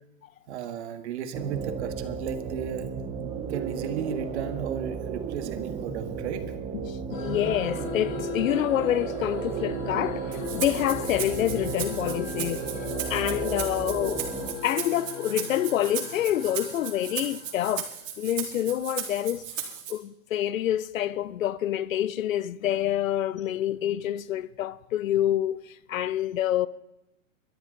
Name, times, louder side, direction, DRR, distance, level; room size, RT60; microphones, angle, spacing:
voice 1, 0.5-2.9 3.5-6.5, right 8 dB, 55° right, 1.8 m, -34 dB
sound 1, 1.3-14.5, right 6 dB, 15° right, 1.0 m, -34 dB
voice 2, 6.7-12.7 13.1-14.3 14.6-17.9 18.2-26.7, left 12 dB, 80° left, 0.8 m, -27 dB
sound 2, 7.1-18.0, left 6 dB, 25° left, 3.9 m, -39 dB
Rattle (instrument), 10.3-19.9, right 8 dB, 70° right, 3.7 m, -36 dB
23.0 x 13.0 x 3.9 m
hypercardioid pair, 150°, 40 cm